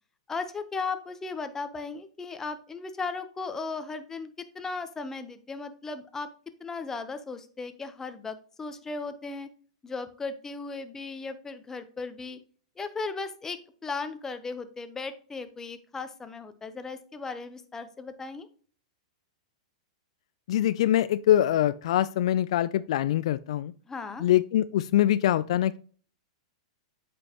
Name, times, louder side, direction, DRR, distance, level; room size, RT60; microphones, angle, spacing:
voice 1, 0.3-6.3 6.6-9.5 9.8-12.4 12.8-18.5 23.9-24.2, left 4 dB, 15° left, 0.8 m, -36 dB
voice 2, 20.5-23.7 24.2-25.8, left 12 dB, 65° left, 0.3 m, -24 dB
8.5 x 5.2 x 2.9 m
hypercardioid pair, 120°, 3 cm